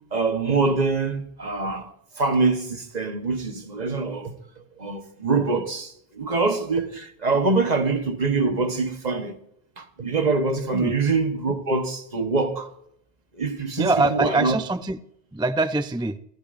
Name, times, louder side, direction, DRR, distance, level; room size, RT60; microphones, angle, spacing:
voice 1, 0.1-1.9 2.2-4.3 4.8-9.4 9.8-12.7 13.4-14.5, right 3 dB, 40° right, 1.3 m, -24 dB
voice 2, 13.8-15.0 15.3-16.2, right 2 dB, 10° right, 0.3 m, -23 dB
29.5 x 12.0 x 2.6 m
omnidirectional pair, 1.1 m